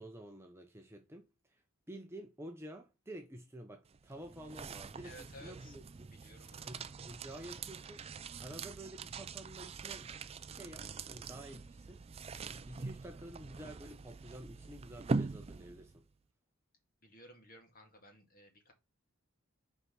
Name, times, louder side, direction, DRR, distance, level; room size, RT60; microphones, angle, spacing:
voice 1, 0.0-1.6 1.9-6.1 6.6-8.0 8.4-10.1 10.5-12.0 12.7-16.1, right 1 dB, 10° right, 0.7 m, -50 dB
sound 1, 3.9-16.0, right 4 dB, 25° right, 0.4 m, -43 dB
voice 2, 5.0-5.8 6.1-6.7 17.0-18.7, left 1 dB, 40° left, 2.1 m, -56 dB
5.7 x 4.7 x 5.8 m
head